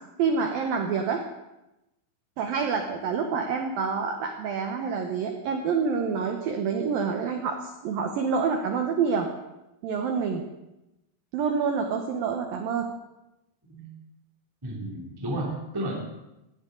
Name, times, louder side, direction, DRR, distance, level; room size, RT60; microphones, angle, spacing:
voice 1, 0.2-1.2 2.4-9.3 9.8-10.4 11.3-12.9, right 5 dB, 75° right, 4 dB, 2.1 m, -27 dB
voice 2, 13.6-13.9 14.6-16.2, right 1 dB, 10° right, -1 dB, 1.0 m, -33 dB
17.5 x 17.0 x 3.9 m, 0.93 s
omnidirectional pair, 5.7 m